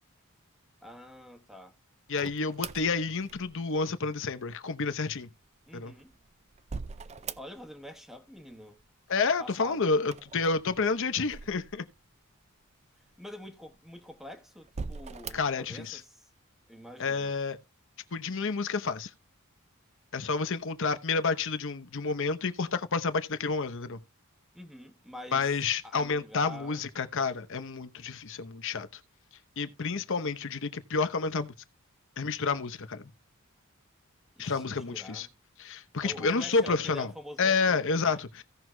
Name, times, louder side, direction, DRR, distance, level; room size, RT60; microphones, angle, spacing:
voice 1, 0.8-1.8 5.7-6.1 7.4-8.8 9.4-9.9 13.2-16.3 16.7-17.4 24.5-25.5 25.8-26.9 34.4-35.3 36.0-38.2, left 1 dB, ahead, 1.1 m, -46 dB
voice 2, 2.1-5.3 5.7-5.9 9.1-11.9 15.3-16.0 17.0-17.6 18.1-19.1 20.1-24.0 25.3-29.0 29.6-31.5 32.2-33.1 34.4-35.3 35.6-37.1 37.4-38.4, left 4 dB, 60° left, 0.9 m, -29 dB
sound 1, 2.2-3.8 5.7-7.9 8.1-8.9 10.0-12.1 12.7-12.8 13.6-14.2 14.6-15.6, right 5 dB, 30° right, 0.4 m, -42 dB
16.5 x 6.2 x 2.2 m
head